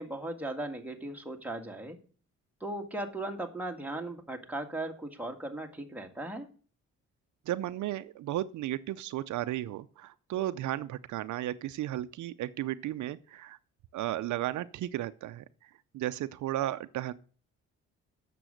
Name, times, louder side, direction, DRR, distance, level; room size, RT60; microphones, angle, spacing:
voice 1, 0.0-2.0 2.6-6.5, right 1 dB, 5° right, 2 dB, 1.8 m, -37 dB
voice 2, 7.5-13.6 13.9-15.4 15.9-17.1, right 14 dB, 75° right, 13 dB, 0.6 m, -34 dB
9.1 x 6.9 x 6.4 m, 0.41 s
cardioid pair, 90°, 30 cm